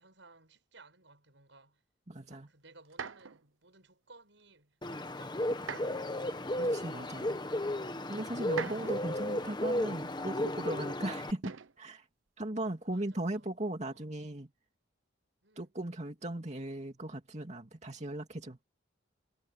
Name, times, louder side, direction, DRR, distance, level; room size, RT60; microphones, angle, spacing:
voice 1, 0.0-1.8 2.2-6.4 12.9-13.6 13.9-14.2 15.4-15.7, right 3 dB, 70° right, 7.9 m, -60 dB
voice 2, 2.1-2.5 6.6-7.4 8.1-11.4 11.8-12.1 12.4-14.5 15.6-18.6, right 1 dB, 35° right, 2.6 m, -38 dB
sound 1, 2.8-3.4 5.5-6.1 7.1-7.2 8.4-9.2 11.4-11.8 13.0-13.4, right 6 dB, 85° right, 0.9 m, -42 dB
Bird, 4.8-11.3, left 1 dB, 20° left, 1.3 m, -34 dB
head